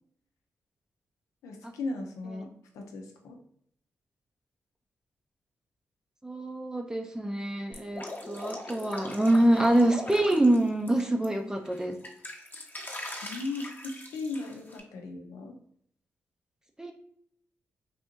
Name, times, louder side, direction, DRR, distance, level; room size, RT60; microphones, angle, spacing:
voice 1, 1.4-2.5 2.7-3.4 13.2-15.6, left 3 dB, 90° left, 2 dB, 0.6 m, -37 dB
voice 2, 6.2-11.9 16.8-16.9, right 1 dB, 10° right, 3 dB, 0.5 m, -25 dB
Drip, 7.7-11.3 11.6-14.8, left 1 dB, 35° left, 0.8 m, -41 dB
3.4 x 2.6 x 2.8 m, 0.68 s
supercardioid pair, 50°, 5 cm